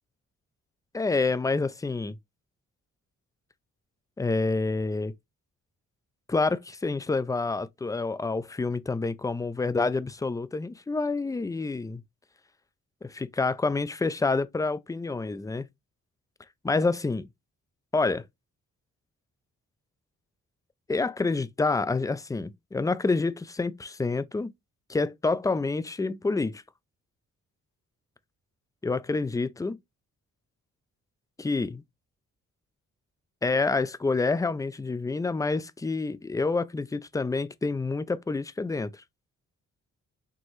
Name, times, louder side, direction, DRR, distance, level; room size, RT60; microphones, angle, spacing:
voice 1, 0.9-2.2 4.2-5.1 6.3-12.0 13.0-15.7 16.6-17.3 17.9-18.2 20.9-24.5 24.9-26.6 28.8-29.8 31.4-31.8 33.4-39.0, left 3 dB, 10° left, 0.4 m, -28 dB
4.5 x 3.0 x 3.1 m
supercardioid pair, 55°, 34 cm